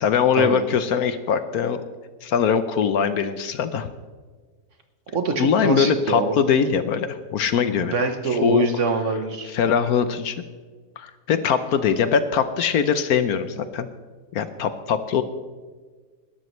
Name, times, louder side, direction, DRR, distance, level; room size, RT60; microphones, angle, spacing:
voice 1, 0.0-1.8 2.2-3.9 5.4-7.9 8.3-8.7 9.5-10.4 11.0-13.9 14.3-15.2, left 7 dB, 70° left, 11 dB, 1.1 m, -22 dB
voice 2, 5.1-6.3 7.8-9.5, right 4 dB, 50° right, 6 dB, 1.2 m, -24 dB
20.0 x 12.0 x 3.1 m, 1.4 s
omnidirectional pair, 1.8 m